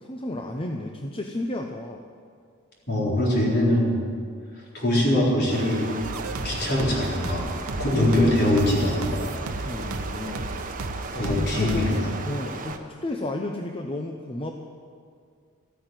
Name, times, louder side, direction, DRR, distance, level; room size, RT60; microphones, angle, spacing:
voice 1, 0.0-2.0 9.6-10.5 11.1-12.0 12.2-14.5, left 1 dB, 25° left, 3 dB, 0.8 m, -32 dB
voice 2, 2.9-4.0 4.7-5.9 6.4-7.5 7.8-9.3 11.1-12.0, left 1 dB, 50° left, -4 dB, 4.1 m, -22 dB
Stream, 5.5-12.8, right 3 dB, 40° right, 1.0 m, -36 dB
sound 1, 6.0-12.0, right 2 dB, 70° right, 0.8 m, -34 dB
14.5 x 9.3 x 9.1 m, 2.2 s
head